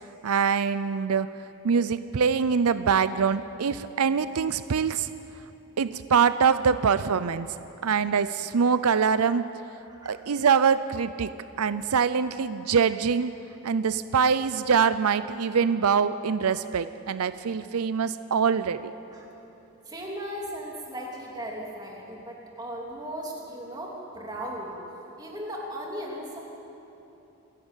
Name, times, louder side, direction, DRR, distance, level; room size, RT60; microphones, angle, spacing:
voice 1, 0.2-1.3 1.6-5.1 5.8-7.5 7.8-9.5 10.1-11.3 11.6-13.3 13.6-18.8, right 6 dB, 85° right, 13 dB, 0.5 m, -24 dB
voice 2, 19.8-26.4, equal, 20° right, -2 dB, 3.0 m, -37 dB
27.0 x 11.5 x 9.1 m, 3.0 s
head